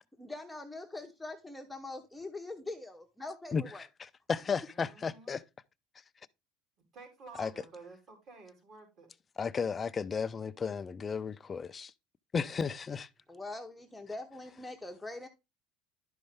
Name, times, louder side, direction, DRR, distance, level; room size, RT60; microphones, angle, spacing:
voice 1, 0.0-3.8 13.3-15.3, left 2 dB, 5° left, 0.8 m, -43 dB
voice 2, 4.0-5.4 7.4-7.5 9.4-11.9 12.3-13.1, left 5 dB, 20° left, 0.4 m, -34 dB
voice 3, 4.6-5.3 6.9-9.1, right 3 dB, 45° right, 3.4 m, -52 dB
11.0 x 5.3 x 3.5 m
cardioid pair, 140°, 0 cm